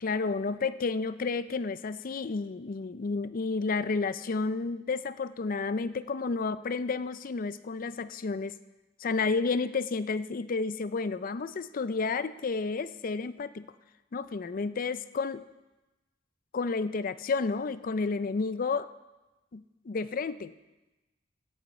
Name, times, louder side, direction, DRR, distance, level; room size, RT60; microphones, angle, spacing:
voice 1, 0.0-8.6 9.0-13.7 14.1-15.4 16.5-18.9 19.5-20.5, left 4 dB, 50° left, 14 dB, 0.5 m, -31 dB
14.5 x 5.8 x 8.6 m, 1.1 s
head